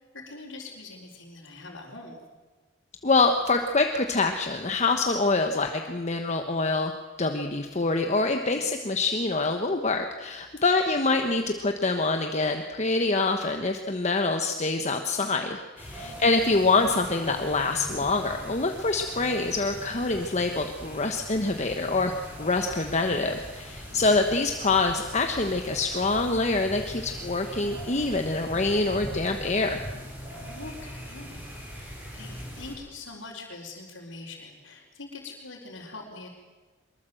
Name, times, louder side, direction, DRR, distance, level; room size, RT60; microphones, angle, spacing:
voice 1, 0.1-2.2 8.5-8.6 15.9-16.1 23.8-24.0 30.4-36.3, left 3 dB, 80° left, -6 dB, 4.3 m, -43 dB
voice 2, 3.0-6.9 7.2-22.1 22.4-29.8, left 3 dB, 35° left, 5 dB, 1.2 m, -25 dB
sound 1, 15.8-32.8, equal, 10° right, 6.6 m, -41 dB
24.0 x 22.0 x 7.8 m, 1.3 s
head